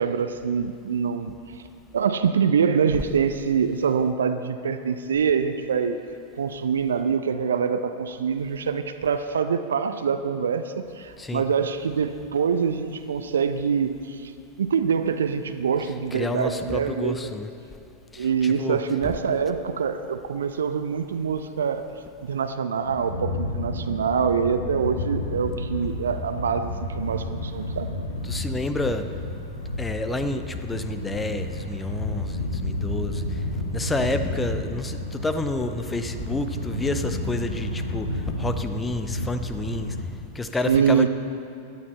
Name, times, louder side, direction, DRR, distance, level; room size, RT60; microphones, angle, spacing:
voice 1, 0.0-1.3 1.9-6.0 6.4-14.3 14.6-17.3 18.2-21.9 22.2-27.9 40.6-41.1, right 6 dB, 65° right, 9 dB, 0.5 m, -25 dB
voice 2, 11.2-11.5 15.9-17.5 18.1-19.4 28.2-29.1 29.6-40.0 40.3-41.1, left 2 dB, 10° left, 9 dB, 0.7 m, -30 dB
sound 1, 22.8-40.0, left 1 dB, 85° left, 1.2 m, -31 dB
17.5 x 11.0 x 4.4 m, 2.5 s
figure-of-eight pair, 90°, 0 cm